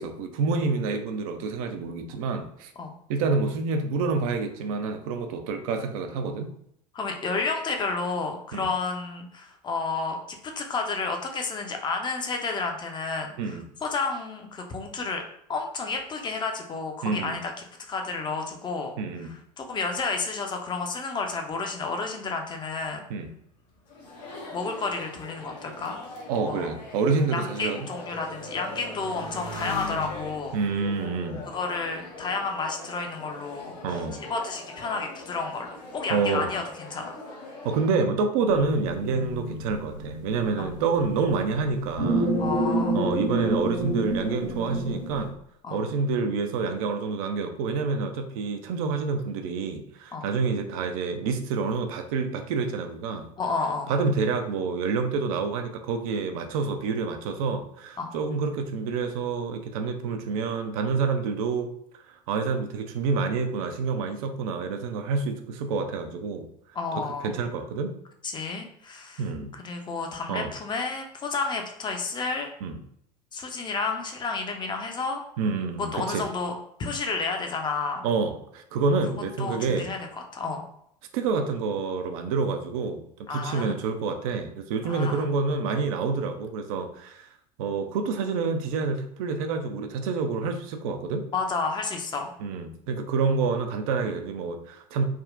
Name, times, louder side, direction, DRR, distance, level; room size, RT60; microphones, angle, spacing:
voice 1, 0.0-2.7 3.1-6.5 8.5-8.7 13.4-13.7 17.0-17.4 19.0-19.3 23.1-23.3 26.3-27.9 30.5-31.5 33.8-34.2 36.1-36.5 37.6-42.3 42.9-45.3 45.7-53.3 53.9-61.7 62.1-66.5 67.0-67.9 69.2-69.5 70.3-70.5 72.6-72.8 75.4-76.3 78.0-79.9 81.1-83.0 83.3-87.3 87.6-91.2 92.4-95.1, right 4 dB, 55° right, 6 dB, 0.5 m, -28 dB
voice 2, 6.9-15.2 15.5-17.5 17.8-18.9 19.6-23.0 24.5-26.0 26.4-26.7 27.3-30.5 31.4-34.0 34.3-37.2 40.6-40.8 42.4-43.0 45.6-45.8 50.1-50.3 53.4-53.9 58.0-58.1 66.7-67.3 68.2-69.2 69.5-72.5 73.3-75.2 75.9-78.0 79.4-80.0 80.3-80.6 83.3-83.8 84.8-85.2 91.3-92.3, left 4 dB, 20° left, 4 dB, 0.5 m, -31 dB
Motorcycle, 23.8-32.8 33.5-34.1, left 2 dB, 45° left, 1.0 m, -43 dB
Chatter, 23.9-38.0, left 2 dB, 75° left, 0.8 m, -42 dB
sound 1, 38.4-45.3, right 1 dB, 80° right, 0.8 m, -29 dB
3.5 x 2.1 x 2.4 m, 0.70 s
figure-of-eight pair, 80°, 21 cm